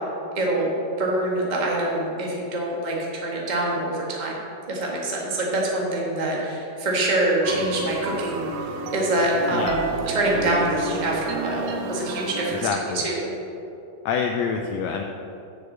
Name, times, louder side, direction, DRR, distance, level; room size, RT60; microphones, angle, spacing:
voice 1, 0.3-4.4 4.7-8.5 8.9-13.3, right 1 dB, 35° right, -3 dB, 0.6 m, -25 dB
sound 1, 7.4-12.7, right 3 dB, 85° right, 2.3 m, -31 dB
voice 2, 12.5-13.0 14.0-15.0, left 6 dB, 85° left, 3 dB, 1.5 m, -27 dB
7.0 x 6.5 x 7.8 m, 2.8 s
omnidirectional pair, 3.6 m